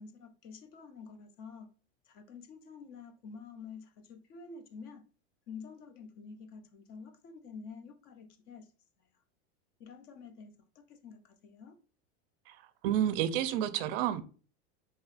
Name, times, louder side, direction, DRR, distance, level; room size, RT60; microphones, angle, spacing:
voice 1, 0.0-1.7 2.1-5.0 5.5-8.7 9.8-11.8, left 5 dB, 30° left, 0.4 m, -49 dB
voice 2, 12.8-14.2, right 11 dB, 55° right, 0.5 m, -30 dB
4.7 x 2.8 x 2.4 m
supercardioid pair, 160°, 34 cm